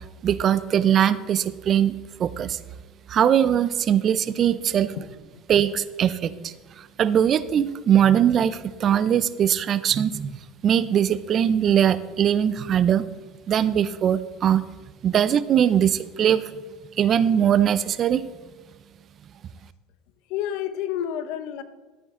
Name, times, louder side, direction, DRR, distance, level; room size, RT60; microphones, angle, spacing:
voice 1, 0.2-2.6 3.1-4.9 5.5-10.3 10.6-13.1 13.5-14.6 15.0-16.5 17.0-18.2, right 9 dB, 40° right, 16 dB, 0.5 m, -21 dB
voice 2, 4.9-5.6 6.3-6.4 8.8-9.0 15.1-15.2 20.3-21.6, left 10 dB, 70° left, 13 dB, 0.7 m, -31 dB
13.0 x 8.9 x 3.7 m, 1.3 s
supercardioid pair, 110°, 0 cm